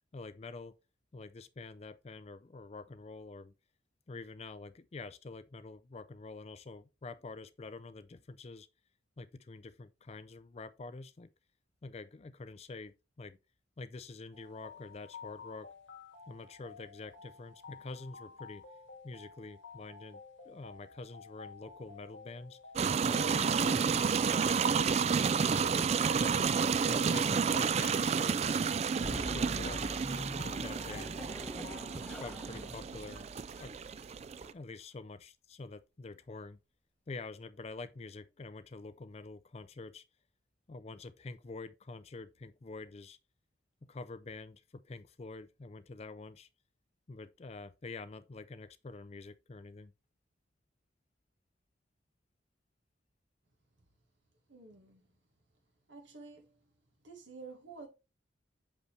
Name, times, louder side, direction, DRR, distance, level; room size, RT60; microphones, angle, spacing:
voice 1, 0.1-0.7 1.1-3.5 4.1-8.7 9.2-11.3 11.8-13.4 13.8-15.7 16.3-18.6 19.0-22.6 23.0-24.7 25.4-26.5 26.9-28.6 28.9-29.9 30.4-31.2 31.9-33.3 33.6-33.8 34.5-36.6 37.1-40.0 40.7-43.2 43.9-46.5 47.1-49.9, left 3 dB, 35° left, 0.4 m, -47 dB
sound 1, 14.3-32.0, left 5 dB, 85° left, 1.7 m, -52 dB
sound 2, 22.8-34.5, right 6 dB, 35° right, 0.3 m, -31 dB
sound 3, 29.0-34.5, left 1 dB, 10° left, 0.8 m, -45 dB
voice 2, 54.5-55.1 55.9-56.7 57.0-57.9, right 4 dB, 75° right, 1.7 m, -50 dB
6.3 x 5.3 x 3.3 m
head